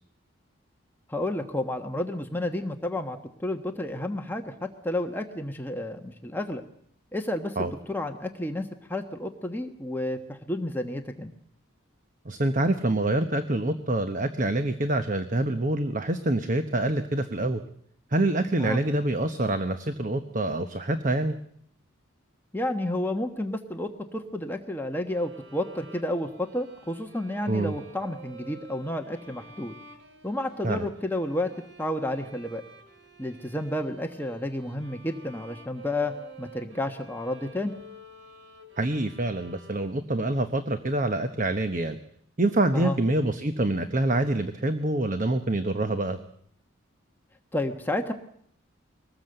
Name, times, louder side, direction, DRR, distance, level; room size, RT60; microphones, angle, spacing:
voice 1, 1.1-6.6 7.1-11.3 18.6-18.8 22.5-29.7 30.2-31.5 31.8-32.6 33.2-36.1 36.4-37.7 42.7-43.0 47.5-48.1, left 1 dB, 10° left, 4 dB, 1.2 m, -31 dB
voice 2, 12.2-17.6 18.1-21.4 27.5-27.7 30.6-30.9 38.8-42.0 42.4-46.2, right 2 dB, 40° right, 9 dB, 1.0 m, -26 dB
sound 1, 25.1-40.2, right 2 dB, 65° right, 3.0 m, -50 dB
23.5 x 19.0 x 7.9 m, 0.68 s
head